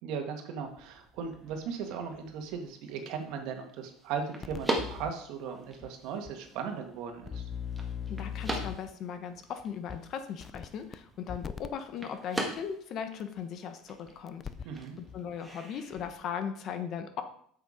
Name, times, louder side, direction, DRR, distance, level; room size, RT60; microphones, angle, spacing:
voice 1, 0.0-7.4 14.6-15.0, right 6 dB, 65° right, 5 dB, 1.6 m, -37 dB
sound 1, 0.6-16.1, right 1 dB, 10° right, 1.6 m, -42 dB
sound 2, 4.4-5.1 5.8-5.9 6.3-6.4 7.2-8.9 9.9-10.0 10.4-11.0 11.3-11.7 13.2-13.3 14.3-14.8 15.1-15.2, left 7 dB, 25° left, 0.4 m, -38 dB
voice 2, 8.1-14.4 15.0-17.2, left 7 dB, 45° left, 9 dB, 1.1 m, -38 dB
8.3 x 6.9 x 5.0 m, 0.62 s
cardioid pair, 140°, 0 cm